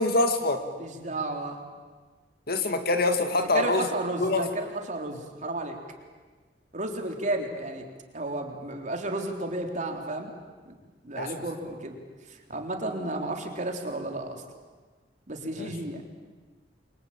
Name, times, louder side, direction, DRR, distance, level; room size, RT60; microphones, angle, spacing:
voice 1, 0.0-0.6 2.5-3.9 4.2-4.4 11.2-11.3 15.6-15.7, left 2 dB, 55° left, 7 dB, 2.4 m, -24 dB
voice 2, 0.8-1.6 3.5-5.8 6.7-7.9 8.1-10.3 10.7-10.8 11.0-12.0 12.5-14.4 15.3-16.0, right 2 dB, 45° right, 3 dB, 3.6 m, -32 dB
28.5 x 24.0 x 8.8 m, 1.4 s
head